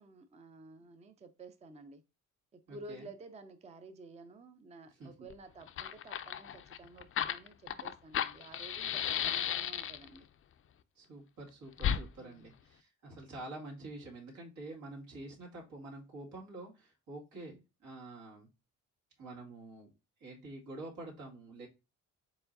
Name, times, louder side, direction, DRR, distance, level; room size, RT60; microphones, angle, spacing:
voice 1, 0.0-2.0 2.5-10.3 12.2-12.5 17.3-17.6, right 2 dB, 20° right, 0.5 m, -52 dB
voice 2, 2.7-3.1 4.9-5.1 11.0-18.5 19.2-19.9 20.2-21.7, right 2 dB, 80° right, 2.1 m, -47 dB
Fire, 5.3-5.4 5.6-10.2 11.8-12.0, left 9 dB, 45° left, 0.4 m, -34 dB
4.7 x 3.8 x 2.6 m
cardioid pair, 90°, 30 cm